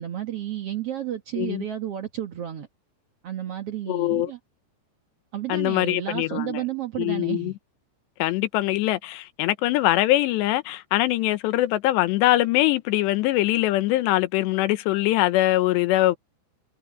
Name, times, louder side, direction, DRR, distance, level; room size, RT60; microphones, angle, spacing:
voice 1, 0.0-2.7 3.2-4.4 5.3-7.5, right 11 dB, 85° right, 1.3 m, -31 dB
voice 2, 3.9-4.3 5.5-6.6 7.0-7.5 8.2-16.2, left 16 dB, 90° left, 3.1 m, -22 dB
omnidirectional pair, 4.9 m